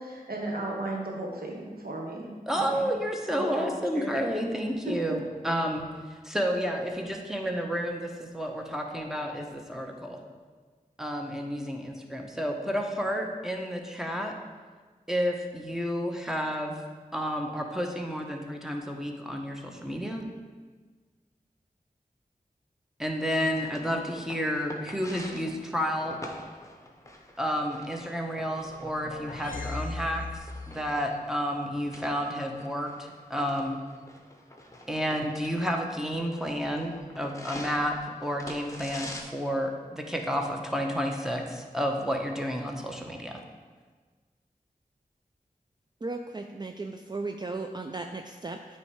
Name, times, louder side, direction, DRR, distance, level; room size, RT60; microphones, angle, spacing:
voice 1, 0.0-2.9 3.3-4.3 4.8-5.0, right 2 dB, 85° right, -1 dB, 1.1 m, -35 dB
voice 2, 2.5-5.9 6.2-10.2 11.0-14.3 15.1-16.8 17.1-20.3 23.0-26.2 27.4-30.2 30.7-33.8 34.9-43.4, equal, 5° right, 2 dB, 0.9 m, -31 dB
sound 1, 23.2-39.2, left 1 dB, 20° left, 0.9 m, -46 dB
sound 2, 28.6-30.9, left 3 dB, 65° left, 0.6 m, -38 dB
voice 3, 46.0-48.8, right 3 dB, 30° right, 4 dB, 0.4 m, -36 dB
8.8 x 3.2 x 4.7 m, 1.4 s
cardioid pair, 45°, 15 cm